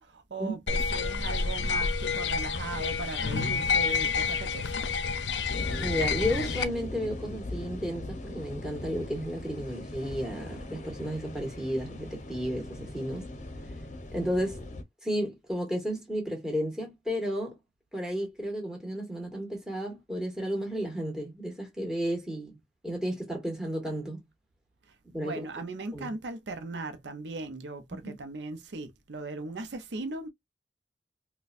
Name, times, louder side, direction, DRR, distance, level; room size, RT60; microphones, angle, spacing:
voice 1, 0.0-4.7 25.2-30.3, right 3 dB, 70° right, 0.6 m, -38 dB
sound 1, 0.7-6.6, left 5 dB, 75° left, 0.5 m, -29 dB
sound 2, 5.5-14.8, left 1 dB, 45° left, 0.7 m, -40 dB
voice 2, 5.8-13.3 14.1-14.6 15.0-17.5 17.9-22.5 22.8-24.2 25.1-25.5 25.9-26.1 27.9-28.2, equal, 5° right, 1.4 m, -33 dB
4.1 x 2.2 x 2.5 m
head